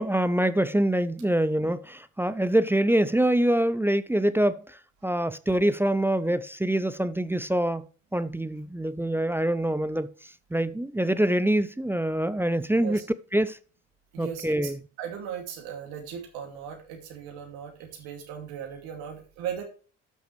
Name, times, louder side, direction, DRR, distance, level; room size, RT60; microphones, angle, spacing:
voice 1, 0.0-4.6 5.0-7.8 8.1-10.1 10.5-13.0 13.3-13.6 14.2-14.8, right 1 dB, 5° right, 0.5 m, -25 dB
voice 2, 14.1-14.7 15.0-19.6, right 8 dB, 75° right, 2.6 m, -37 dB
12.0 x 6.2 x 3.3 m
hypercardioid pair, 55°, 37 cm